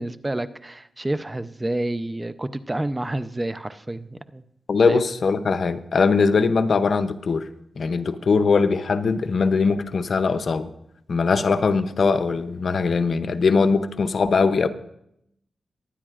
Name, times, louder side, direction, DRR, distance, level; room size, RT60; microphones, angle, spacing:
voice 1, 0.0-4.4 4.9-5.0, right 1 dB, 20° right, 12 dB, 0.6 m, -29 dB
voice 2, 4.7-7.5 7.8-10.7 11.1-14.7, left 4 dB, 65° left, 11 dB, 0.7 m, -21 dB
22.5 x 9.8 x 2.5 m, 0.76 s
cardioid pair, 60°, 0 cm